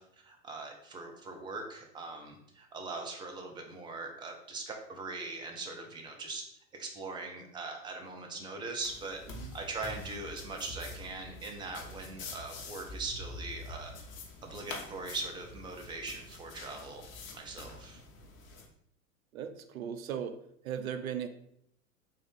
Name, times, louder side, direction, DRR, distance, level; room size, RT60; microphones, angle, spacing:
voice 1, 0.0-6.4 6.7-9.2 9.5-13.9 14.4-18.0, right 3 dB, 10° right, 2 dB, 0.4 m, -41 dB
sound 1, 8.8-18.7, left 2 dB, 30° left, 0.8 m, -46 dB
voice 2, 19.3-21.3, right 8 dB, 75° right, 9 dB, 0.6 m, -38 dB
3.7 x 2.5 x 3.5 m, 0.72 s
hypercardioid pair, 100°, 42 cm